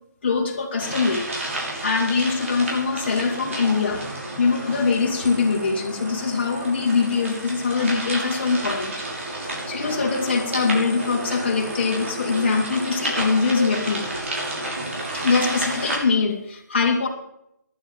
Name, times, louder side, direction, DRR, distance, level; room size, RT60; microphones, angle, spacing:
voice 1, 0.2-1.3 1.5-4.0 4.4-9.1 9.4-14.0 15.1-17.1, left 4 dB, 35° left, 1 dB, 3.0 m, -23 dB
sound 1, 0.8-16.0, right 1 dB, 45° right, 6.1 m, -31 dB
14.5 x 11.5 x 7.5 m, 0.80 s
hypercardioid pair, 170°, 10 cm